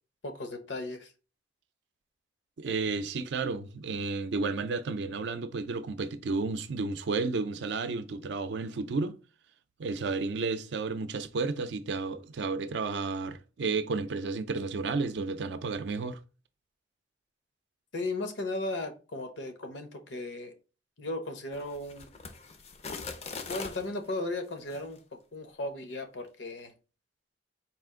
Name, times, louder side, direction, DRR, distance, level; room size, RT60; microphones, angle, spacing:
voice 1, 0.2-1.1 17.9-20.5 21.0-22.1 23.5-25.0 25.3-26.7, left 2 dB, 80° left, 0.8 m, -36 dB
voice 2, 2.6-9.2 9.8-16.2, right 4 dB, 75° right, 0.4 m, -32 dB
sound 1, 21.5-23.9 24.6-24.8, left 4 dB, 35° left, 0.4 m, -41 dB
4.2 x 2.4 x 3.6 m
head